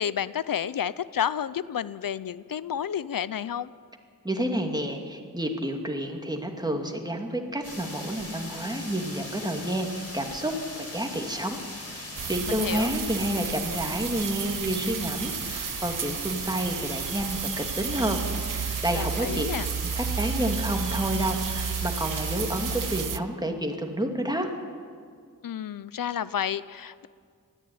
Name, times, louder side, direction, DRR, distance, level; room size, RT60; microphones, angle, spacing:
voice 1, 0.0-3.7 12.5-12.9 19.0-19.7 25.4-27.1, left 9 dB, 80° left, 17 dB, 0.5 m, -30 dB
voice 2, 4.2-11.6 11.9-19.5 19.8-24.5, right 1 dB, 10° right, 3 dB, 2.4 m, -30 dB
sound 1, 7.6-23.0, left 1 dB, 45° left, 4.1 m, -40 dB
sound 2, 12.2-23.2, right 7 dB, 70° right, 0.6 m, -32 dB
19.5 x 14.5 x 9.5 m, 2.1 s
wide cardioid pair, 85°, 33 cm